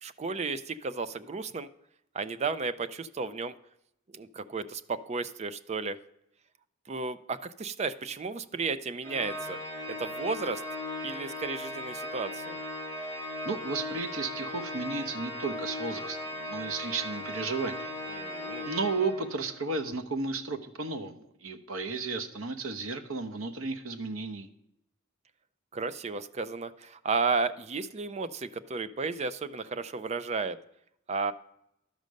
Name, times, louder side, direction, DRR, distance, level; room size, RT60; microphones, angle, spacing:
voice 1, 0.0-1.7 2.1-3.5 4.1-6.0 6.9-9.6 9.9-10.6 11.0-12.6 18.1-18.7 25.7-30.6 31.1-31.3, right 4 dB, 35° right, 14 dB, 0.4 m, -33 dB
Organ, 9.0-19.6, left 1 dB, 60° right, 4.4 m, -38 dB
voice 2, 13.4-18.0 18.6-24.5, right 3 dB, 85° right, 6 dB, 1.0 m, -33 dB
12.0 x 5.2 x 6.4 m, 0.79 s
head